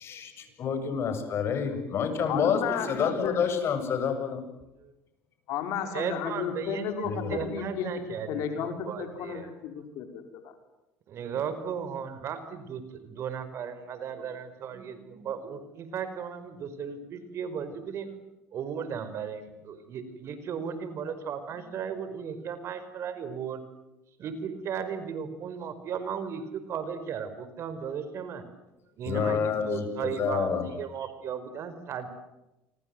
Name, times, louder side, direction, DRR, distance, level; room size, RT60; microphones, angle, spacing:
voice 1, 0.0-4.4 7.1-7.4 29.0-30.6, left 6 dB, 50° left, 7 dB, 7.3 m, -28 dB
voice 2, 2.3-3.4 5.5-8.0 8.3-10.5, left 7 dB, 70° left, 6 dB, 5.1 m, -33 dB
voice 3, 5.9-9.5 11.1-18.1 18.5-23.6 24.2-28.4 29.0-32.1, right 7 dB, 55° right, 11 dB, 5.0 m, -36 dB
28.5 x 24.5 x 8.0 m, 0.96 s
supercardioid pair, 90°, 6 cm